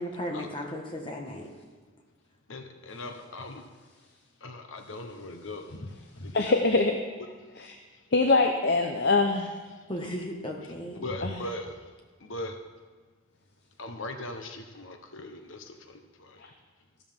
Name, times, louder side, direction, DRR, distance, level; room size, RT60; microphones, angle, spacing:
voice 1, 0.0-1.5 9.9-11.1, equal, 25° left, 1 dB, 1.6 m, -35 dB
voice 2, 2.5-3.6 4.4-5.6 6.2-6.9 7.9-8.0 9.7-9.8 11.0-11.9 12.2-12.6 13.8-16.4, left 1 dB, 75° left, 5 dB, 1.1 m, -39 dB
voice 3, 6.3-7.0 8.1-9.5 11.2-11.3, left 3 dB, 55° left, 5 dB, 0.7 m, -23 dB
14.5 x 13.0 x 3.7 m, 1.4 s
head